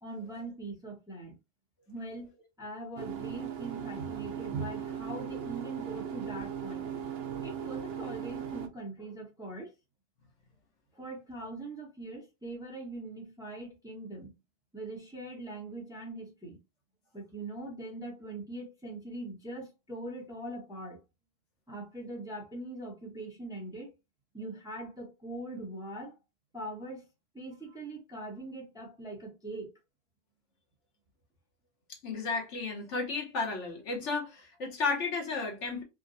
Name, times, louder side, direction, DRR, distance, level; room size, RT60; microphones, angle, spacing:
voice 1, 0.0-1.3 1.9-2.3 2.6-6.9 7.4-9.7 10.9-14.3 14.7-16.6 17.1-21.0 21.7-23.9 24.3-26.1 26.5-27.0 27.3-29.7, right 2 dB, 5° right, 0.9 m, -41 dB
sound 1, 3.0-8.7, right 8 dB, 65° right, 0.8 m, -38 dB
voice 2, 32.0-35.8, left 4 dB, 85° left, 1.4 m, -33 dB
3.7 x 2.2 x 2.6 m
omnidirectional pair, 1.2 m